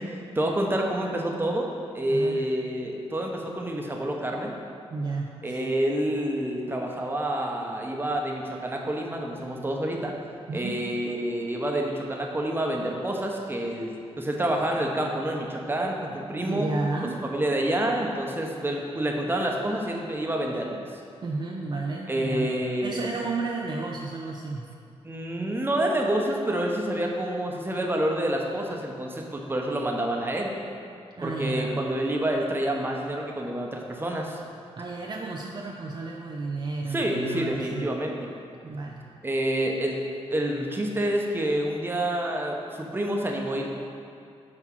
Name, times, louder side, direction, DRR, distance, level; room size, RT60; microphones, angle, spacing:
voice 1, 0.0-1.7 1.9-4.5 5.4-10.1 10.5-16.7 17.3-20.8 22.1-23.1 25.0-30.5 31.2-34.4 36.9-38.3 39.2-40.0 40.3-43.7, right 1 dB, 20° right, 0 dB, 1.0 m, -28 dB
voice 2, 2.1-2.4 4.9-5.6 10.5-10.8 16.4-17.2 21.2-22.5 22.8-24.7 31.2-31.8 34.8-37.9 38.6-39.0, right 3 dB, 45° right, -1 dB, 0.6 m, -32 dB
5.9 x 4.4 x 6.1 m, 2.4 s
cardioid pair, 80°, 11 cm